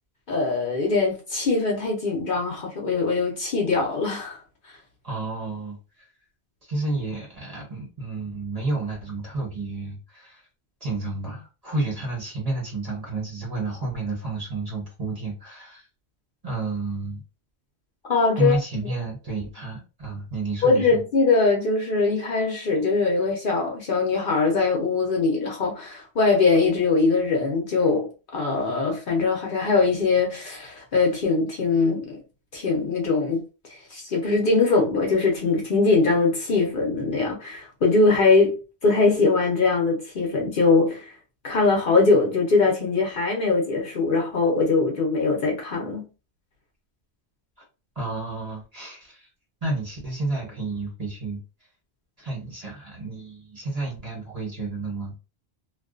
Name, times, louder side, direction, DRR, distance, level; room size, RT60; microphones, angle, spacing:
voice 1, 0.3-4.4 18.1-18.9 20.6-32.2 32.5-33.4 33.9-41.1 41.4-46.1, left 3 dB, 55° left, 0.8 m, -22 dB
voice 2, 5.0-6.0 6.7-10.4 10.8-15.9 16.4-17.2 18.4-21.0 47.9-49.3 49.6-51.4 52.2-55.2, right 3 dB, 35° right, 1.1 m, -30 dB
2.4 x 2.2 x 2.4 m
omnidirectional pair, 1.1 m